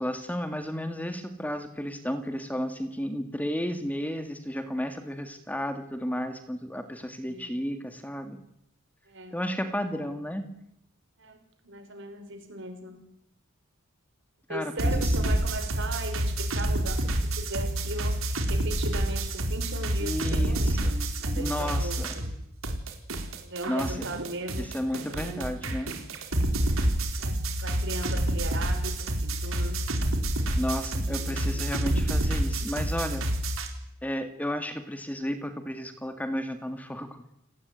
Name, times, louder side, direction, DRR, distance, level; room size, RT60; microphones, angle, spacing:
voice 1, 0.0-8.4 9.3-10.5 14.5-15.4 20.0-20.9 21.4-22.2 23.7-24.1 24.6-26.0 30.5-33.3 34.0-37.2, equal, 5° left, 8 dB, 2.0 m, -33 dB
voice 2, 7.2-7.6 9.1-9.4 10.0-10.2 11.2-13.0 14.5-22.2 23.4-24.7 25.1-25.6 26.5-26.7 27.2-29.8 31.1-31.7, right 2 dB, 60° right, 6 dB, 6.1 m, -38 dB
sound 1, 14.8-22.4 22.6-33.7, right 1 dB, 85° right, 4.5 m, -28 dB
29.5 x 18.5 x 9.7 m, 0.79 s
head